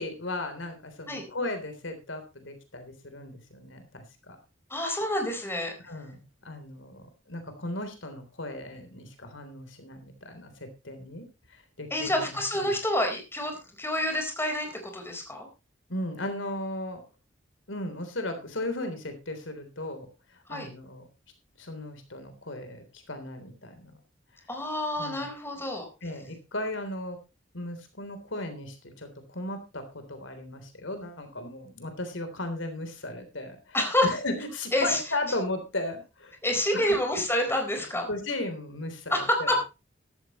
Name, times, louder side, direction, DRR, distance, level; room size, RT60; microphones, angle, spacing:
voice 1, 0.0-4.4 5.8-7.0 7.3-11.2 11.5-12.7 15.9-17.0 17.7-20.1 20.5-21.0 21.6-24.0 25.0-25.3 26.0-27.2 27.5-33.8 34.0-36.3 36.7-37.0 38.1-39.6, left 1 dB, 80° left, 7 dB, 3.5 m, -36 dB
voice 2, 4.7-5.7 11.9-15.5 20.5-20.7 24.5-25.9 33.7-34.1 34.7-35.0 36.4-38.1 39.1-39.6, left 1 dB, 15° left, 4 dB, 4.4 m, -28 dB
14.5 x 13.0 x 3.1 m, 0.28 s
head